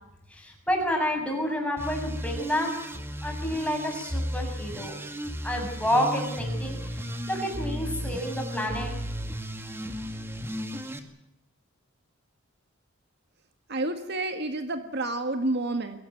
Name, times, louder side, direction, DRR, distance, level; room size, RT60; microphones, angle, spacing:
voice 1, 0.3-2.8 3.2-5.0 5.4-7.0 7.3-8.9, equal, 5° left, 1 dB, 7.0 m, -29 dB
sound 1, 1.8-11.0, equal, 10° right, 2.1 m, -34 dB
voice 2, 13.7-16.0, right 2 dB, 50° right, 7 dB, 1.8 m, -29 dB
22.5 x 18.0 x 9.4 m, 0.86 s
head